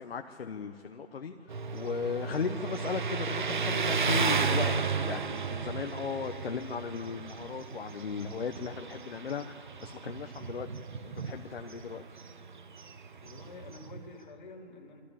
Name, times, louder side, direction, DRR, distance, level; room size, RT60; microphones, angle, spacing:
voice 1, 0.0-1.3 1.7-4.7 5.0-10.7 11.0-12.0, left 6 dB, 65° left, 5 dB, 1.0 m, -37 dB
Motorcycle, 1.5-14.1, right 5 dB, 45° right, 0.8 m, -34 dB
voice 2, 13.2-15.0, left 3 dB, 45° left, 1 dB, 2.4 m, -48 dB
22.5 x 13.5 x 8.7 m, 2.8 s
hypercardioid pair, 180°, 32 cm